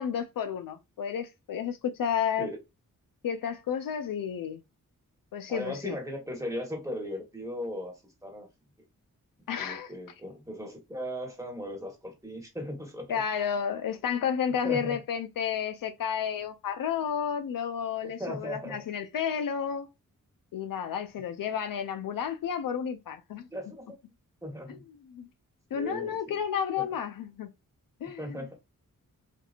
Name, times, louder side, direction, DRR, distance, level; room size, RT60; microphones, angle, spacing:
voice 1, 0.0-2.5 3.2-4.6 5.3-5.9 9.5-9.9 13.1-19.9 20.5-23.5 24.7-24.8 25.1-25.3 25.7-27.5 28.0-28.4, left 8 dB, 70° left, 0.5 m, -31 dB
voice 2, 5.5-8.5 9.6-13.1 14.1-14.2 14.6-15.0 18.0-18.8 23.5-24.0 24.4-24.8 25.7-26.4 26.8-26.9 28.2-28.6, equal, 10° right, 1.3 m, -38 dB
2.7 x 2.6 x 2.4 m
cardioid pair, 45°, 35 cm